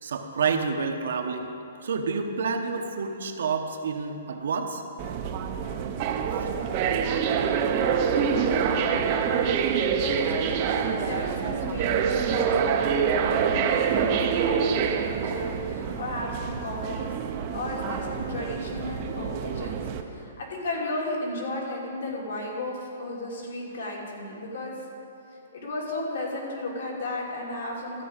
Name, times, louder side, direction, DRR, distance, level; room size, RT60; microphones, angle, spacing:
voice 1, 0.0-1.5 1.8-4.8, right 5 dB, 70° right, 4 dB, 1.0 m, -28 dB
sound 1, 5.0-20.0, right 7 dB, 30° right, 0.6 m, -26 dB
voice 2, 6.5-7.1 7.8-17.1 17.5-24.7 25.5-28.0, left 2 dB, 65° left, -3 dB, 3.0 m, -34 dB
13.0 x 4.9 x 8.8 m, 2.7 s
hypercardioid pair, 170°, 0 cm